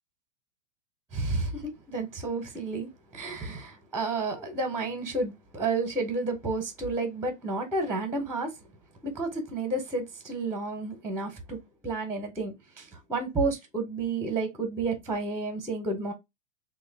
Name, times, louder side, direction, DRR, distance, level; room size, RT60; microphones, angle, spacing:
voice 1, 1.1-8.5 9.0-11.6 11.8-16.1, right 3 dB, 5° right, 0.7 m, -31 dB
3.2 x 2.3 x 3.2 m
hypercardioid pair, 105°, 37 cm